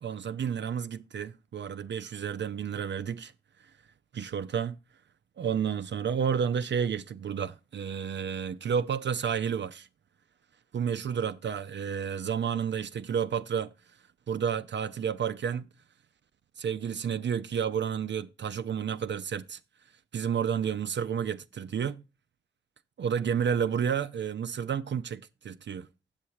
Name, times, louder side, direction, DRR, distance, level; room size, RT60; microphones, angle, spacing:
voice 1, 0.0-3.3 4.1-4.8 5.4-9.9 10.7-13.7 14.3-15.7 16.6-19.6 20.1-22.0 23.0-25.9, right 7 dB, 65° right, 0.5 m, -31 dB
7.5 x 7.1 x 4.6 m
cardioid pair, 50°, 20 cm